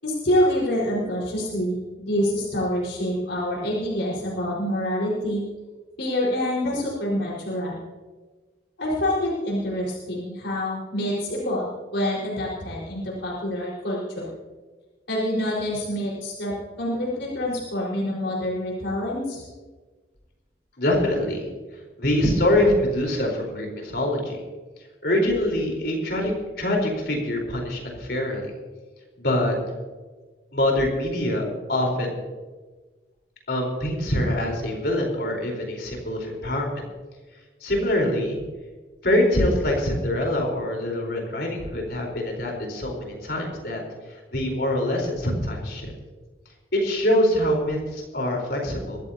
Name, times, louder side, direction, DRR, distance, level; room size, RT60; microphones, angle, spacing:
voice 1, 0.0-5.4 6.0-7.8 8.8-14.2 15.1-19.4, equal, 90° left, -6 dB, 4.7 m, -26 dB
voice 2, 20.8-21.4 22.0-24.4 25.0-26.3 26.6-28.5 29.2-29.5 30.5-32.3 33.5-36.8 37.6-38.4 39.0-43.8 44.3-45.9 46.7-49.0, left 1 dB, 60° left, 1 dB, 4.2 m, -24 dB
22.5 x 14.5 x 2.8 m, 1.3 s
head